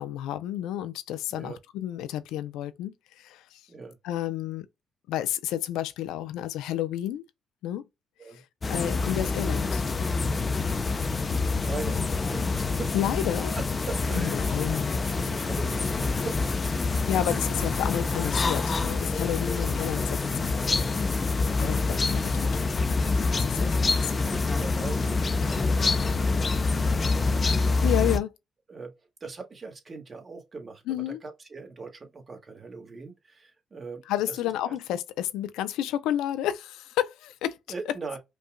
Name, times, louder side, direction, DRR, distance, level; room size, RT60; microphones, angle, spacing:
voice 1, 0.0-3.6 4.0-4.7 5.1-7.2 7.6-7.8 8.3-8.4 8.7-9.8 12.9-13.5 14.1-14.9 17.1-20.7 21.6-22.7 23.2-23.7 27.8-28.3 30.9-31.2 34.1-37.6, left 12 dB, 90° left, 0.4 m, -31 dB
sound 1, 8.6-28.2, left 3 dB, 35° left, 0.7 m, -26 dB
voice 2, 11.6-13.0 13.9-14.8 15.1-17.1 19.9-20.1 21.4-21.8 23.5-27.9 28.7-34.8 37.7-38.2, right 4 dB, 35° right, 1.6 m, -41 dB
5.3 x 2.4 x 2.2 m
cardioid pair, 75°, 0 cm